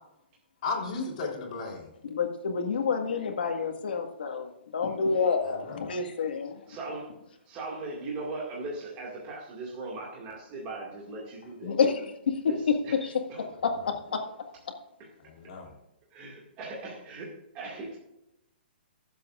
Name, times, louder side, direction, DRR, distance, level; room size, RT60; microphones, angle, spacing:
voice 1, 0.6-1.9 5.5-5.8 15.3-15.7, left 4 dB, 35° left, -2 dB, 3.6 m, -34 dB
voice 2, 2.0-6.6 11.6-13.2 13.6-14.2, left 5 dB, 65° left, 4 dB, 1.8 m, -28 dB
voice 3, 6.7-7.1 7.5-11.8 12.5-12.6 12.8-13.0 13.3-13.5 16.1-18.0, right 3 dB, 20° right, -3 dB, 2.1 m, -39 dB
22.0 x 7.6 x 2.5 m, 0.87 s
hypercardioid pair, 175°, 6 cm